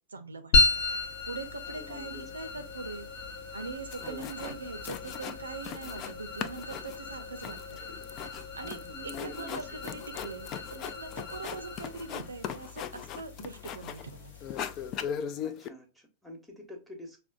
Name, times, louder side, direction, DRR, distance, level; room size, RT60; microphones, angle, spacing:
voice 1, 0.1-3.1 3.5-8.0 8.6-8.8 9.0-14.3, right 4 dB, 75° right, 0.5 m, -42 dB
sound 1, 0.5-15.2, left 3 dB, 55° left, 1.0 m, -34 dB
voice 2, 1.7-2.2 4.0-4.3 8.6-10.0 15.4-17.2, equal, ahead, 1.0 m, -46 dB
sound 2, 3.6-3.7 3.9-4.6 4.8-6.1 6.4-14.1 14.4-15.7, left 8 dB, 35° left, 0.3 m, -39 dB
5.9 x 2.1 x 2.3 m
figure-of-eight pair, 90°, 0 cm